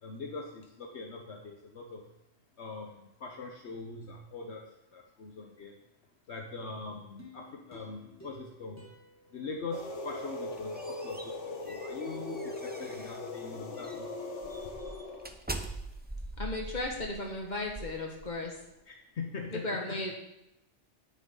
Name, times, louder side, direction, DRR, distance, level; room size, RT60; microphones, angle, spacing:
voice 1, 0.0-2.0 2.6-4.6 4.9-5.7 6.3-8.8 9.3-11.2 11.5-14.5 18.9-20.0, left 4 dB, 70° left, 2 dB, 1.3 m, -42 dB
sound 1, 7.2-10.5 10.9-11.0, left 1 dB, 15° left, 2.0 m, -54 dB
sound 2, 9.7-15.3, left 2 dB, 85° left, 1.5 m, -40 dB
sound 3, 10.3-13.3 13.8-14.0 14.4-18.7, right 2 dB, 10° right, 0.5 m, -43 dB
voice 2, 16.4-18.6 19.5-20.1, left 2 dB, 40° left, 0 dB, 1.9 m, -35 dB
10.0 x 9.4 x 3.9 m, 0.86 s
omnidirectional pair, 1.2 m